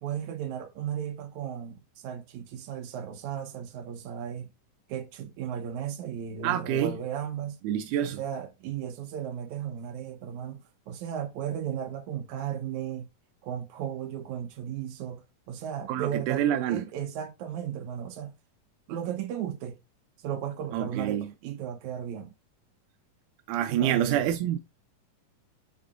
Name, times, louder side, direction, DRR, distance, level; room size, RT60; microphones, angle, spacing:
voice 1, 0.0-4.5 4.9-7.6 8.0-13.1 13.4-18.3 18.9-19.8 20.2-22.3 23.7-24.3, right 9 dB, 65° right, 2.1 m, -35 dB
voice 2, 6.4-7.0 7.6-8.2 15.9-16.9 20.7-21.3 23.5-24.6, right 10 dB, 80° right, 1.8 m, -27 dB
9.7 x 4.1 x 2.5 m
omnidirectional pair, 4.1 m